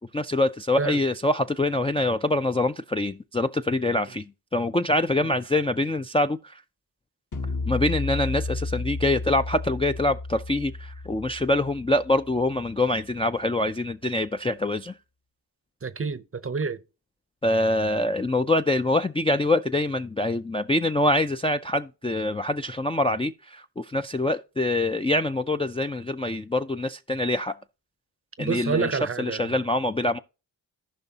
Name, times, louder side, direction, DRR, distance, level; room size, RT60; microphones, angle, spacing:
voice 1, 0.1-6.6 7.7-15.0 17.4-27.5 28.4-30.2, left 1 dB, 15° left, 0.3 m, -25 dB
sound 1, 7.3-12.7, left 3 dB, 45° left, 1.0 m, -33 dB
voice 2, 15.8-16.8 28.4-29.5, right 5 dB, 30° right, 0.6 m, -28 dB
14.5 x 5.3 x 2.8 m
cardioid pair, 40°, 43 cm